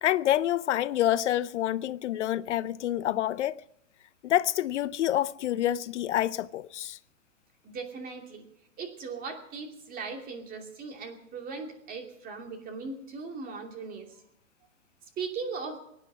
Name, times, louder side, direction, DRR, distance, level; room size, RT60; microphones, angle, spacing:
voice 1, 0.0-3.6 4.2-7.0, left 12 dB, 65° left, 0.6 m, -27 dB
voice 2, 7.6-8.5 8.8-14.2 15.2-15.8, right 4 dB, 20° right, 2.7 m, -38 dB
23.5 x 9.7 x 6.1 m
hypercardioid pair, 135°, 38 cm